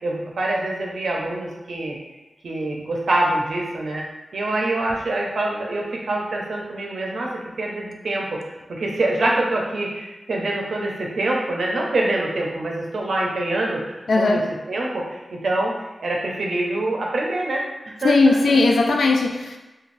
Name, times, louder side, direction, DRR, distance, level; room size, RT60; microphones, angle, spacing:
voice 1, 0.0-2.0 2.4-4.0 4.3-8.4 8.7-14.4 14.7-15.7 16.0-17.6 18.0-18.6, right 2 dB, 80° right, -1 dB, 0.5 m, -25 dB
voice 2, 14.1-14.5 18.0-19.6, left 3 dB, 85° left, 3 dB, 0.3 m, -18 dB
2.5 x 2.3 x 3.1 m, 1.1 s
wide cardioid pair, 75°, 0 cm